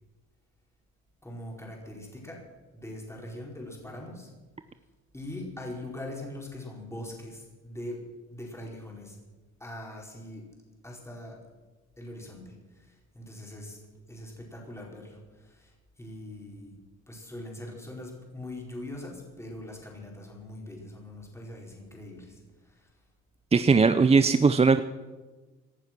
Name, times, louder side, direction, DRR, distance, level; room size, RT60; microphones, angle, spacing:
voice 1, 1.2-2.4 2.7-4.3 5.1-9.2 9.6-10.5 10.8-11.4 12.0-13.8 14.1-16.8 17.1-22.9, left 1 dB, 10° left, -1 dB, 4.8 m, -42 dB
voice 2, 23.5-24.8, right 4 dB, 20° right, 11 dB, 0.6 m, -19 dB
18.0 x 11.0 x 6.1 m, 1.3 s
cardioid pair, 90°, 30 cm